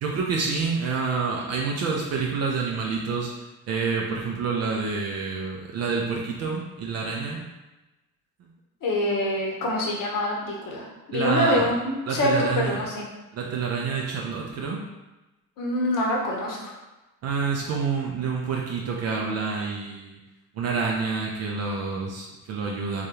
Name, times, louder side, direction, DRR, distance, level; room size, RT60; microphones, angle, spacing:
voice 1, 0.0-3.3 3.7-7.4 8.4-8.5 11.1-11.7 12.1-12.8 13.3-14.8 17.2-20.2 20.5-23.1, right 5 dB, 35° right, -1 dB, 0.4 m, -28 dB
voice 2, 8.8-13.0 15.6-16.6, left 1 dB, 40° left, -1 dB, 0.9 m, -25 dB
3.5 x 2.3 x 2.9 m, 1.1 s
figure-of-eight pair, 50°, 49 cm